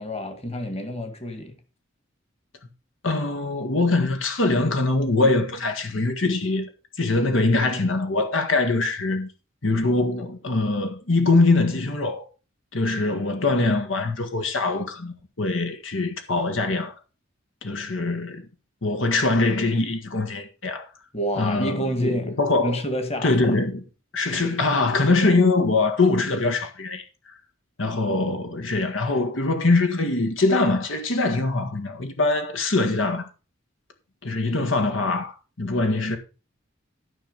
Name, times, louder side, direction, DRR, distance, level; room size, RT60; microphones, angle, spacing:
voice 1, 0.0-1.6 21.1-22.4 22.6-23.6, equal, 30° left, 1.9 m, -28 dB
voice 2, 3.0-6.7 7.0-9.3 9.6-12.3 12.7-16.9 17.6-18.4 18.8-20.9 21.4-22.8 23.2-23.8 24.1-27.3 27.8-33.3 34.2-36.2, left 3 dB, 75° left, 1.7 m, -23 dB
13.0 x 5.9 x 5.2 m
head